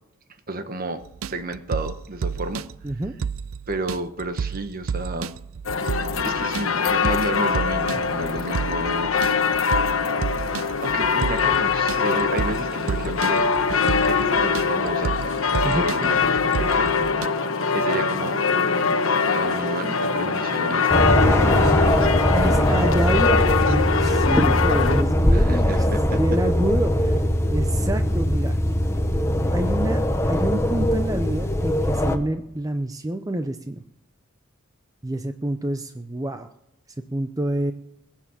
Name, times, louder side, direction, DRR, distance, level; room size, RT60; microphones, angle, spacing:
voice 1, 0.5-2.7 3.7-5.3 6.2-9.6 10.8-17.1 17.7-19.0 19.3-21.7 25.3-26.2, right 2 dB, 45° right, 9 dB, 1.2 m, -31 dB
sound 1, 1.0-17.3, right 6 dB, 80° right, 0.4 m, -31 dB
voice 2, 2.8-3.1 15.6-15.8 22.3-25.9 26.1-27.2 27.5-28.6 29.5-33.8 35.0-36.5 37.1-37.7, right 1 dB, 15° right, 8 dB, 0.6 m, -27 dB
sound 2, 5.7-25.0, left 5 dB, 85° left, 1.1 m, -23 dB
sound 3, 20.9-32.2, equal, 15° left, 1.1 m, -21 dB
21.5 x 7.4 x 6.9 m, 0.86 s
head